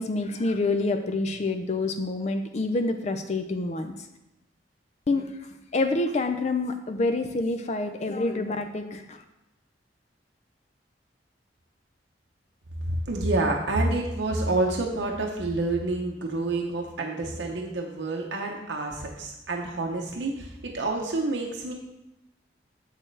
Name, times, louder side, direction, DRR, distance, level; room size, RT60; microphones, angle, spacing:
voice 1, 0.0-4.1 5.1-5.3 5.7-9.2, left 2 dB, 40° left, 7 dB, 0.4 m, -27 dB
voice 2, 12.9-21.7, right 2 dB, 80° right, 0 dB, 0.8 m, -28 dB
7.5 x 6.5 x 3.2 m, 0.92 s
head